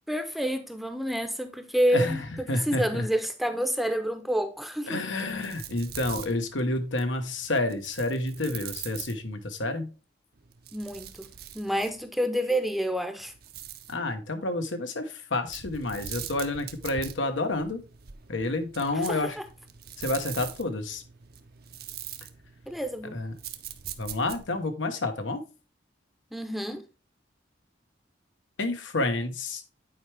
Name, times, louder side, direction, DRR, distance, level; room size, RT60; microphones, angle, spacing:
voice 1, 0.1-5.0 10.7-11.3 11.5-13.3 18.9-19.4 22.7-23.2 26.3-26.8, equal, ahead, 0.6 m, -28 dB
voice 2, 1.9-3.1 4.9-9.9 13.9-17.8 18.3-19.4 20.0-21.0 23.1-23.3 24.0-25.4 28.6-29.6, left 2 dB, 90° left, 1.1 m, -29 dB
sound 1, 5.1-9.6 10.4-12.1 13.2-14.0 15.5-24.6, right 9 dB, 55° right, 0.7 m, -43 dB
9.3 x 4.6 x 3.3 m
head